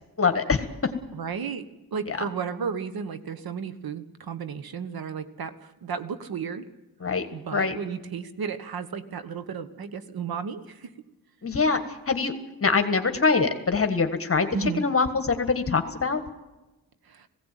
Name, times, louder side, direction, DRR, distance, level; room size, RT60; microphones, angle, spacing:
voice 1, 0.2-0.9 2.1-2.2 7.0-7.3 7.5-7.8 11.4-11.8 12.1-12.3 12.6-16.2, left 4 dB, 35° left, 8 dB, 1.7 m, -24 dB
voice 2, 1.1-6.6 7.3-10.9 14.5-14.8 17.0-17.3, right 6 dB, 65° right, 11 dB, 1.4 m, -33 dB
18.0 x 16.5 x 9.2 m, 1.1 s
cardioid pair, 90°, 38 cm